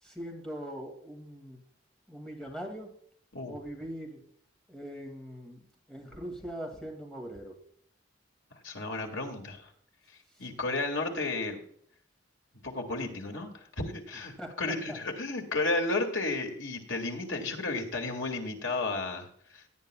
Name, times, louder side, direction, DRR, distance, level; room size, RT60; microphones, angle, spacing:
voice 1, 0.0-1.6 2.1-2.9 3.5-4.2 4.7-7.6 14.4-15.0, equal, 5° left, 1 dB, 2.2 m, -41 dB
voice 2, 8.5-9.7 10.1-11.6 12.6-19.7, left 2 dB, 85° left, 3 dB, 2.2 m, -33 dB
17.5 x 9.4 x 2.3 m, 0.63 s
head